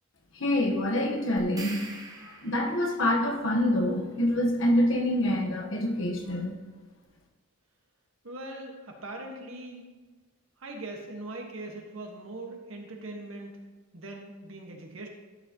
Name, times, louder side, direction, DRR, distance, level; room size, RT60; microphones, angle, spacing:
voice 1, 0.3-1.8 2.2-6.6, left 1 dB, 65° left, 2 dB, 1.2 m, -26 dB
sound 1, 1.4-2.9, right 3 dB, 20° right, 0.9 m, -43 dB
voice 2, 8.2-9.9 10.6-13.5 13.9-15.1, right 2 dB, 80° right, 1 dB, 1.5 m, -41 dB
12.0 x 7.0 x 2.9 m, 1.3 s
head